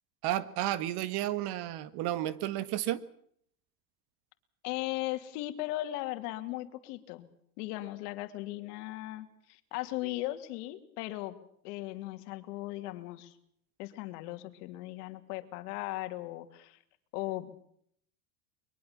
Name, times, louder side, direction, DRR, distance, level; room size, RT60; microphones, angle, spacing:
voice 1, 0.2-3.0, right 13 dB, 50° right, 15 dB, 1.7 m, -32 dB
voice 2, 4.6-7.3 7.6-11.3 11.6-13.3 13.8-16.8 17.1-17.5, left 16 dB, 65° left, 9 dB, 3.0 m, -37 dB
22.5 x 22.5 x 7.4 m, 0.67 s
supercardioid pair, 130°, 49 cm